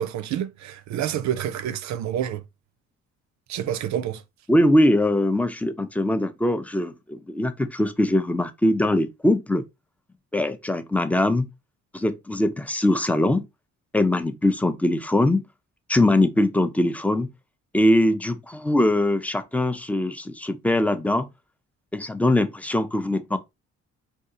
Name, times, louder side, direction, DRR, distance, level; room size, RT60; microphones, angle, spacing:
voice 1, 0.0-2.4 3.5-4.2, right 10 dB, 65° right, 0.5 m, -28 dB
voice 2, 4.5-9.7 10.3-11.5 11.9-13.4 13.9-15.4 15.9-17.3 17.7-21.3 21.9-23.4, left 1 dB, 5° left, 0.4 m, -22 dB
2.7 x 2.3 x 3.8 m
cardioid pair, 90°, 30 cm